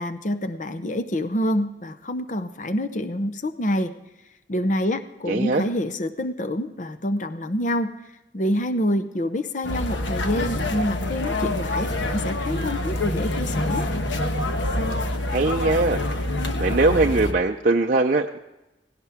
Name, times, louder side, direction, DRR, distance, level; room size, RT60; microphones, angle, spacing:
voice 1, 0.0-3.9 4.5-7.9 8.3-13.9, equal, 40° left, 11 dB, 0.7 m, -27 dB
voice 2, 5.3-5.6 15.3-16.0 16.6-18.4, right 3 dB, 45° right, 2 dB, 0.5 m, -21 dB
sound 1, 9.6-17.3, left 1 dB, 85° left, 1.2 m, -26 dB
17.5 x 17.0 x 3.5 m, 0.96 s
head